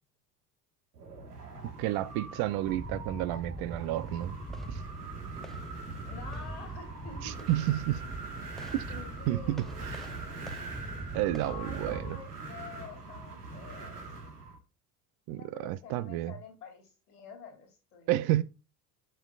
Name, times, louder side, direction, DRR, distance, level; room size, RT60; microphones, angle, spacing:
Wind, 0.9-14.6, right 3 dB, 90° right, 1.7 m, -43 dB
voice 1, 1.8-4.4 4.7-4.8 7.2-8.0 8.7-8.8 9.3-9.6 9.9-10.1 11.1-12.2 15.3-16.3 18.1-18.4, right 15 dB, 55° right, 0.7 m, -30 dB
sound 1, 2.7-12.1, right 1 dB, ahead, 0.8 m, -43 dB
voice 2, 6.0-7.5 8.9-10.4 11.3-14.1 15.3-18.3, left 5 dB, 90° left, 2.9 m, -48 dB
11.5 x 5.5 x 2.5 m
hypercardioid pair, 75°, 45 cm